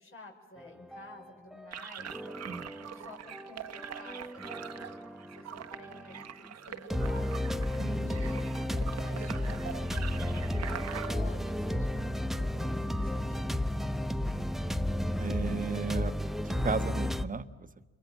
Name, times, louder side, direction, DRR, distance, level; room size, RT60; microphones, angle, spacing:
voice 1, 0.0-2.2 2.9-4.5 4.7-5.1 5.3-7.6 8.0-8.6 9.0-13.8, left 3 dB, 45° left, 1 dB, 5.9 m, -52 dB
Deep Space Garage Band, 0.6-1.7 2.0-6.3 6.9-17.2, left 1 dB, ahead, 1.0 m, -33 dB
sound 1, 1.7-11.1, right 9 dB, 60° right, 1.5 m, -43 dB
voice 2, 7.8-8.2 15.2-16.1 16.4-17.9, right 5 dB, 25° right, 10 dB, 1.5 m, -35 dB
29.5 x 23.0 x 7.3 m, 1.2 s
cardioid pair, 90°, 30 cm